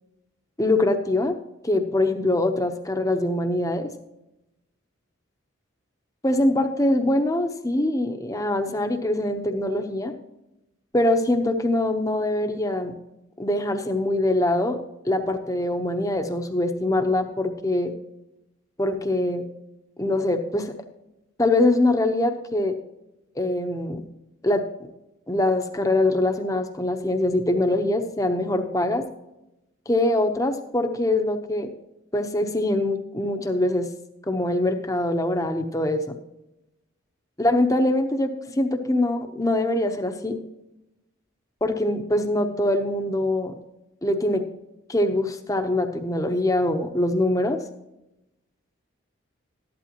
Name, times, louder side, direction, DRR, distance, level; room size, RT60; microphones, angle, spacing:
voice 1, 0.6-1.4 1.6-3.9 6.2-10.1 10.9-13.0 13.4-14.8 15.0-17.9 18.8-19.5 20.0-20.7 21.4-22.8 23.4-24.0 24.4-24.6 25.3-29.0 29.9-31.7 32.1-33.9 34.3-36.2 37.4-40.4 41.6-43.5 44.0-44.4 44.9-47.6, left 1 dB, 15° left, 6 dB, 0.9 m, -23 dB
13.5 x 11.5 x 3.0 m, 0.94 s
head